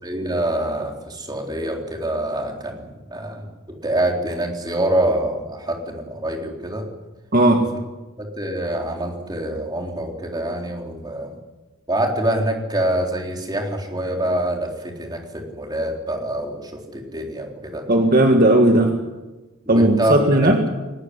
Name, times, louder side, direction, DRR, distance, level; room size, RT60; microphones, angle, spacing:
voice 1, 0.0-2.8 3.1-6.8 8.2-11.3 11.9-17.8 19.7-20.1 20.4-20.5, right 1 dB, 20° right, 1 dB, 3.8 m, -25 dB
voice 2, 7.3-7.6 17.9-18.9 19.7-20.6, right 1 dB, 45° right, 3 dB, 1.9 m, -15 dB
20.0 x 19.5 x 10.0 m, 1.1 s
head